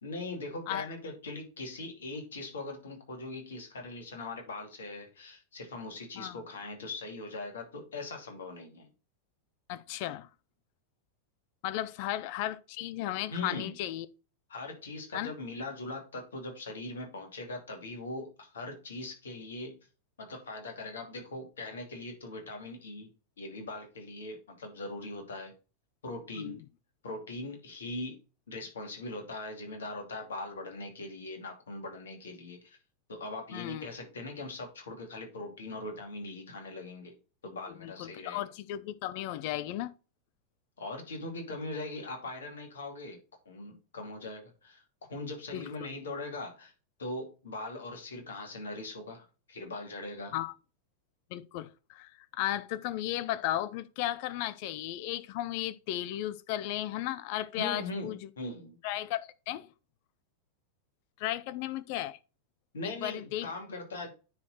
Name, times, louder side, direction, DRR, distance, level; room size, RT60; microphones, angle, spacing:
voice 1, 0.0-8.9 13.3-13.7 14.5-19.8 20.2-23.1 23.4-25.5 26.0-26.6 27.0-28.2 28.5-32.8 33.1-37.2 37.4-38.4 40.8-43.2 43.4-44.8 45.1-46.7 47.0-50.3 57.6-58.8 62.7-64.1, left 2 dB, 65° left, 2.7 m, -40 dB
voice 2, 9.7-10.3 11.6-14.1 15.1-15.3 26.4-26.6 33.5-33.9 37.8-39.9 45.5-45.7 50.3-50.5 51.3-58.3 58.8-59.7 61.2-62.2 62.8-63.5, left 14 dB, 45° left, 0.6 m, -35 dB
9.6 x 4.3 x 4.2 m
figure-of-eight pair, 90°, 0 cm